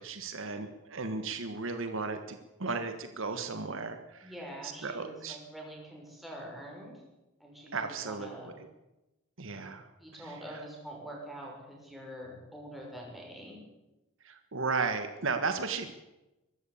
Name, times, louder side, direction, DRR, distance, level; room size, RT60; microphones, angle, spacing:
voice 1, 0.0-4.3 4.6-5.4 7.7-8.5 9.4-9.9 10.2-10.6 14.2-16.0, right 4 dB, 60° right, 8 dB, 1.5 m, -35 dB
voice 2, 4.2-7.0 7.4-8.5 10.0-13.6, equal, ahead, -2 dB, 6.5 m, -45 dB
23.0 x 13.0 x 8.6 m, 0.99 s
head